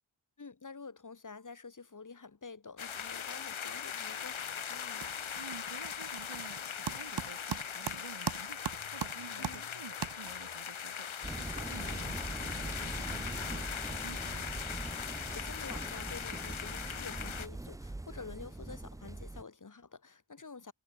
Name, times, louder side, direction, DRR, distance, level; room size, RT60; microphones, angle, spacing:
voice 1, 0.4-5.2 9.4-9.7 11.8-12.2 15.0-20.7, left 4 dB, 40° left, 1.9 m, -49 dB
sound 1, 2.8-17.5, left 7 dB, 85° left, 1.4 m, -40 dB
sound 2, 4.1-4.5 4.8-10.6, right 7 dB, 55° right, 1.1 m, -41 dB
voice 2, 5.3-14.5, right 5 dB, 80° right, 6.2 m, -51 dB
sound 3, 11.2-19.4, right 2 dB, 10° right, 0.3 m, -42 dB
wide cardioid pair, 65°, 47 cm